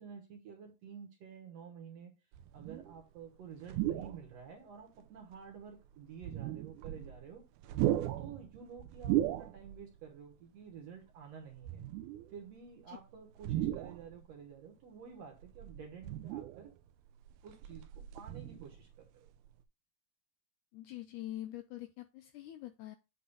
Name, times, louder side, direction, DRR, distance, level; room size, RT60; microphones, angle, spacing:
voice 1, 0.0-2.1 2.5-7.5 8.2-11.8 12.3-16.7 17.4-19.3, right 7 dB, 60° right, 1.9 m, -51 dB
sound 1, 2.3-3.0 3.6-4.4 5.0-5.1 6.1-7.3 7.6-9.9 10.2-10.3 11.5-12.4 13.4-14.3 15.4-16.7 17.2-18.9 19.3-19.5, right 14 dB, 80° right, 1.8 m, -36 dB
voice 2, 20.7-23.0, left 14 dB, 80° left, 1.8 m, -44 dB
8.5 x 3.0 x 5.4 m
omnidirectional pair, 4.0 m